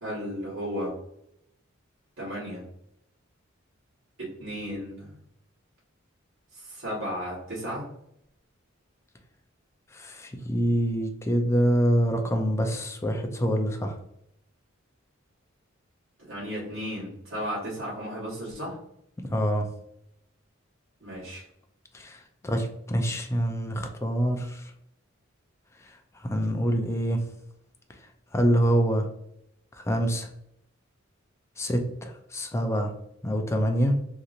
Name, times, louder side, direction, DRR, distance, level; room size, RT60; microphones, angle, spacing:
voice 1, 0.0-0.9 2.2-2.6 4.4-5.2 6.5-7.9 16.3-18.7 21.0-21.4, equal, 75° right, -8 dB, 1.4 m, -34 dB
voice 2, 9.9-14.0 19.2-19.7 21.9-24.7 26.2-27.2 28.3-29.1 29.8-30.3 31.6-32.9 33.2-34.0, equal, 15° left, 4 dB, 0.4 m, -26 dB
2.9 x 2.7 x 2.5 m, 0.76 s
head